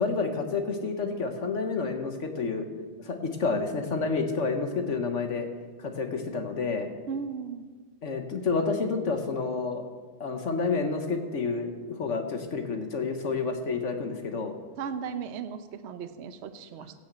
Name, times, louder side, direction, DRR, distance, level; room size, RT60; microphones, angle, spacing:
voice 1, 0.0-2.7 3.0-5.5 5.8-6.9 8.0-9.9 10.2-14.5, left 4 dB, 45° left, 6 dB, 1.1 m, -29 dB
voice 2, 7.1-7.7 14.8-16.9, right 6 dB, 75° right, 10 dB, 0.6 m, -36 dB
16.0 x 6.4 x 8.0 m, 1.4 s
omnidirectional pair, 2.2 m